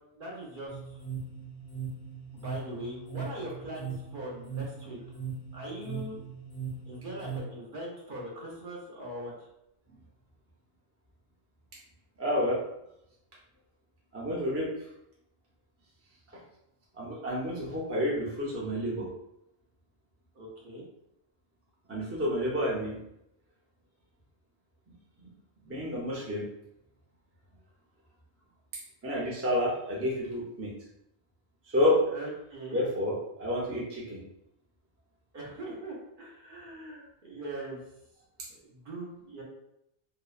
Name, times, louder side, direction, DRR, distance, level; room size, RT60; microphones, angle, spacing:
voice 1, 0.2-1.0 2.3-5.0 5.5-6.2 6.9-9.5 20.3-20.8 32.1-32.9 35.3-37.8 38.5-39.4, right 1 dB, 55° right, -3 dB, 0.8 m, -41 dB
sound 1, 0.7-7.4, right 6 dB, 45° left, 0.5 m, -39 dB
voice 2, 12.2-12.6 14.1-14.7 17.0-19.1 21.9-23.0 25.6-26.4 29.0-30.7 31.7-32.0 32.7-34.2, left 1 dB, 20° right, -5 dB, 0.4 m, -29 dB
2.7 x 2.0 x 2.3 m, 0.81 s
omnidirectional pair, 1.1 m